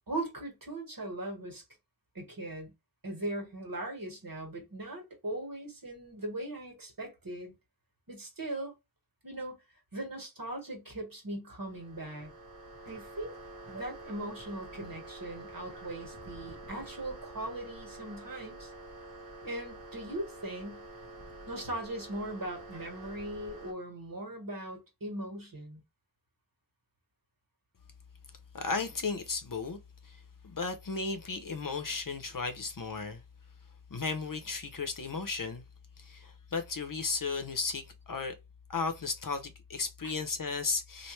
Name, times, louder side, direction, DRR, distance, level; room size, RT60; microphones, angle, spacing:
voice 1, 0.1-1.6 2.1-2.7 3.0-7.5 8.1-8.7 9.2-9.6 9.9-12.3 12.8-13.3 13.7-18.7 19.4-20.8 21.5-25.8 40.0-40.2, right 1 dB, 60° right, 1.5 m, -39 dB
sound 1, 11.5-23.7, right 2 dB, 75° right, 1.2 m, -47 dB
voice 2, 28.5-29.8 30.0-33.2 33.9-35.6 36.0-38.4 38.7-41.1, left 4 dB, 55° left, 0.7 m, -35 dB
3.1 x 2.6 x 3.1 m
wide cardioid pair, 45°, 39 cm